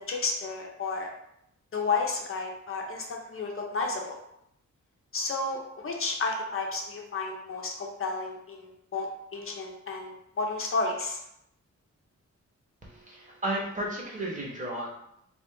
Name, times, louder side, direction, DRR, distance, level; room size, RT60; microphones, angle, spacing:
voice 1, 0.1-1.1 1.7-4.2 5.1-9.1 9.3-11.2, left 3 dB, 50° left, 0 dB, 0.6 m, -32 dB
voice 2, 12.8-14.9, right 1 dB, 25° right, -3 dB, 1.0 m, -33 dB
3.4 x 2.4 x 3.6 m, 0.77 s
wide cardioid pair, 130°, 29 cm